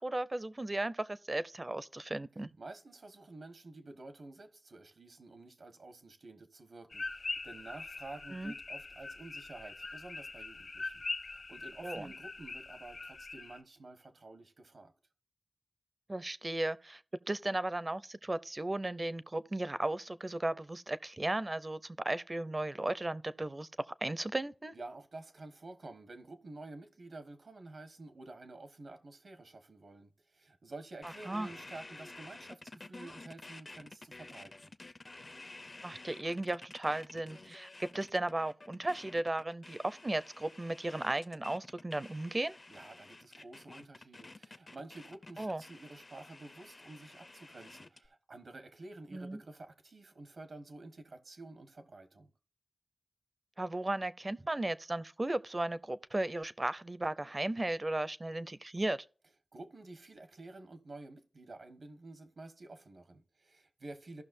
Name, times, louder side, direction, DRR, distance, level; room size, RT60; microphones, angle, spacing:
voice 1, 0.0-2.5 8.3-8.5 11.8-12.1 16.1-17.0 17.3-23.7 24.0-24.7 31.0-31.5 35.8-42.6 45.4-45.6 49.1-49.4 53.6-59.0, right 2 dB, 35° right, 0.5 m, -35 dB
voice 2, 2.6-14.9 24.7-34.7 42.7-52.3 59.5-64.2, right 2 dB, 80° right, 1.3 m, -50 dB
sound 1, 6.9-13.6, left 3 dB, 70° left, 1.3 m, -42 dB
sound 2, 31.0-48.1, left 2 dB, 45° left, 0.6 m, -51 dB
15.0 x 6.0 x 2.6 m
wide cardioid pair, 75°, 0 cm